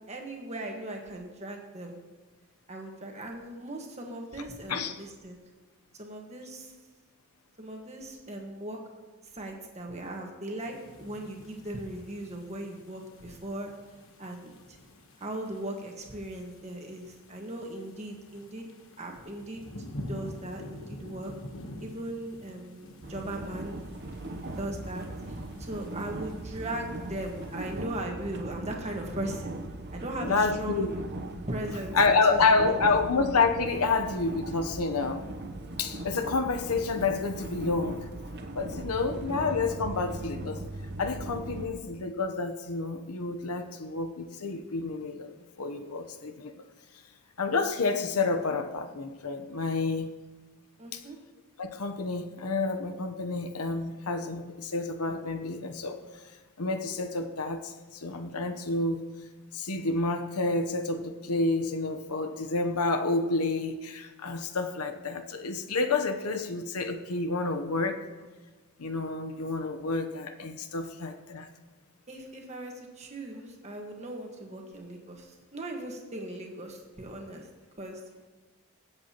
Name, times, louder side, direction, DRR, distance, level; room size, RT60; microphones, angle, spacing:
voice 1, 0.1-1.9 2.7-5.4 5.9-6.7 7.6-8.8 9.3-13.7 14.2-14.5 15.2-18.7 19.0-19.6 20.1-21.3 21.8-23.8 24.6-29.5 29.9-30.9 31.5-32.9 50.8-51.2 72.1-77.5 77.8-78.0, right 1 dB, 30° right, 1 dB, 1.6 m, -38 dB
sound 1, 10.6-27.9, left 1 dB, 60° left, 1.3 m, -47 dB
sound 2, 23.0-41.7, right 1 dB, 50° right, 0.9 m, -39 dB
voice 2, 30.2-30.9 31.9-35.3 35.8-38.1 38.5-40.6 41.0-45.3 45.6-46.5 47.4-50.1 50.9-51.0 51.6-56.0 56.6-59.0 59.5-68.0 68.8-71.5, left 3 dB, 80° left, 7 dB, 0.9 m, -29 dB
23.0 x 7.9 x 3.0 m, 1.3 s
head